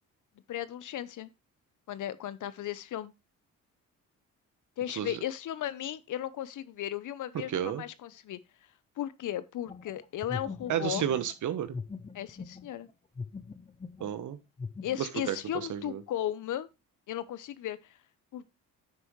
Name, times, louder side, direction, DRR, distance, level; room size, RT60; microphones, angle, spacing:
voice 1, 0.5-1.3 1.9-3.1 4.8-8.4 9.0-11.1 12.1-12.9 14.8-16.7 17.1-18.0 18.3-18.5, left 11 dB, 65° left, 0.8 m, -36 dB
voice 2, 7.5-7.8 10.7-11.7 14.0-14.4 15.0-16.0, right 10 dB, 60° right, 1.2 m, -32 dB
sound 1, 9.7-12.9 13.1-14.1 14.6-15.0, left 4 dB, 20° left, 0.6 m, -41 dB
9.2 x 6.3 x 3.1 m
supercardioid pair, 75°, 34 cm